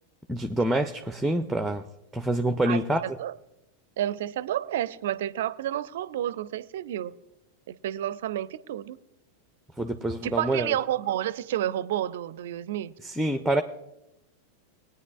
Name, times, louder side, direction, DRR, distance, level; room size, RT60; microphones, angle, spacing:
voice 1, 0.3-1.8 2.1-3.0 9.8-10.7 13.0-13.6, right 1 dB, 5° right, 8 dB, 0.5 m, -26 dB
voice 2, 4.0-7.1 7.7-9.0 10.2-12.9, right 12 dB, 55° right, 17 dB, 0.4 m, -30 dB
21.0 x 9.4 x 2.4 m, 0.90 s
figure-of-eight pair, 90°, 0 cm